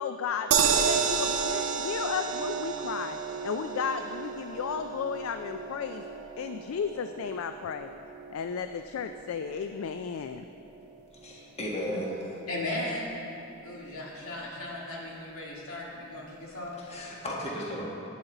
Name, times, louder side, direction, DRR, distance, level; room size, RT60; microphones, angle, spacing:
voice 1, 0.0-6.0 6.4-7.9 8.3-10.4, left 7 dB, 70° left, 0.3 m, -34 dB
sound 1, 0.5-12.7 13.1-13.2 13.5-13.6, right 6 dB, 85° right, 0.7 m, -32 dB
voice 2, 11.1-12.4 16.8-18.0, equal, 30° left, 1.5 m, -35 dB
voice 3, 12.5-13.2 13.6-16.8, left 1 dB, 90° left, 2.1 m, -36 dB
11.0 x 9.3 x 4.0 m
head